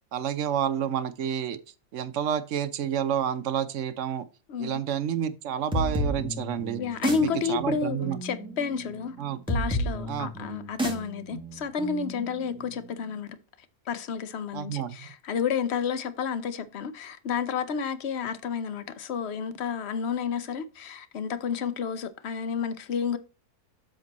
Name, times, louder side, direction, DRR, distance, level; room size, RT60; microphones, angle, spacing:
voice 1, 0.1-1.6 1.9-4.3 4.6-6.8 7.2-8.2 9.2-9.4 10.1-10.5 14.5-15.1, right 9 dB, 60° right, 0.9 m, -29 dB
voice 2, 4.5-4.8 6.8-9.2 9.5-13.4 13.9-23.2, left 6 dB, 55° left, 0.9 m, -31 dB
sound 1, 5.7-13.1, equal, 5° right, 1.6 m, -32 dB
7.8 x 5.3 x 4.1 m
omnidirectional pair, 1.6 m